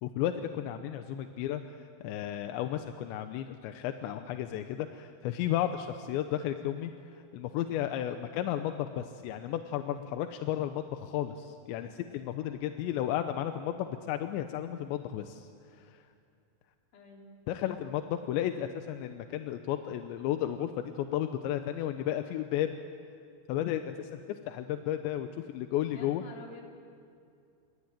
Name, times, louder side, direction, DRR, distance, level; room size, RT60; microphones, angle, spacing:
voice 1, 0.0-16.0 17.5-22.7 23.5-26.2, left 11 dB, 80° left, 7 dB, 2.9 m, -33 dB
voice 2, 16.9-17.4 25.9-26.6, left 3 dB, 50° left, 0 dB, 5.1 m, -49 dB
28.0 x 23.0 x 8.9 m, 2.4 s
omnidirectional pair, 5.8 m